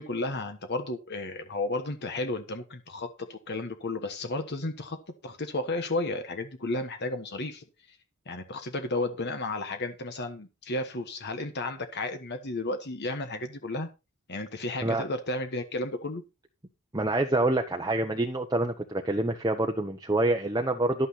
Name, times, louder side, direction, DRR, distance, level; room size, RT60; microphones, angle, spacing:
voice 1, 0.0-5.0 5.2-7.6 8.3-13.9 14.3-16.2, left 2 dB, 50° left, 7 dB, 1.3 m, -33 dB
voice 2, 16.9-21.1, right 2 dB, 15° right, 3 dB, 1.0 m, -26 dB
12.0 x 9.0 x 4.1 m, 0.27 s
head